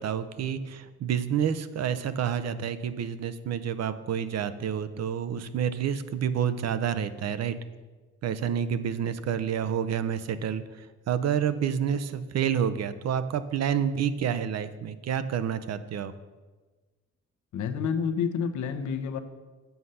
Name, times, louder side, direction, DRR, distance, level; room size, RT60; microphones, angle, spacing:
voice 1, 0.0-7.6 8.2-16.1, right 8 dB, 60° right, 12 dB, 0.7 m, -29 dB
voice 2, 17.5-19.2, left 6 dB, 70° left, 9 dB, 0.9 m, -29 dB
8.0 x 6.4 x 5.5 m, 1.3 s
cardioid pair, 90°, 30 cm